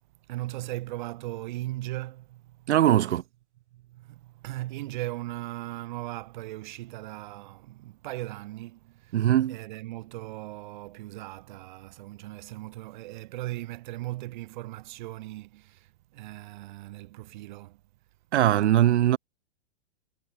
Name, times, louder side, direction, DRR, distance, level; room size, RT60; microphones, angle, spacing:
voice 1, 0.3-2.7 3.7-9.2 9.5-17.8, right 17 dB, 40° right, 4.0 m, -38 dB
voice 2, 2.7-3.2 9.1-9.6 18.3-19.2, right 12 dB, 70° right, 1.0 m, -21 dB
hypercardioid pair, 170°, 36 cm